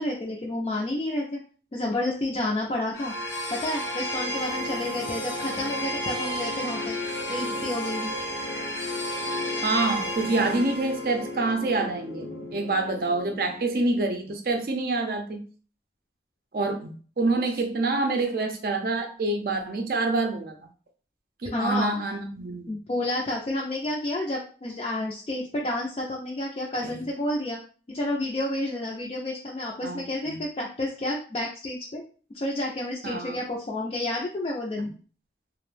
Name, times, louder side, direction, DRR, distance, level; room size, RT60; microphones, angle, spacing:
voice 1, 0.0-1.4 1.7-3.1 3.5-7.0 7.3-8.1 21.5-22.0 22.7-27.6 27.9-32.0 32.3-34.9, left 1 dB, 35° left, -2 dB, 0.3 m, -30 dB
sound 1, 2.9-14.0, left 1 dB, 85° left, 0.9 m, -32 dB
voice 2, 9.6-15.4 16.5-20.7 21.4-22.7 26.8-27.0 29.8-30.4 33.0-33.4 34.8-34.9, right 3 dB, 55° right, 4 dB, 0.5 m, -27 dB
2.5 x 2.0 x 3.1 m, 0.40 s
head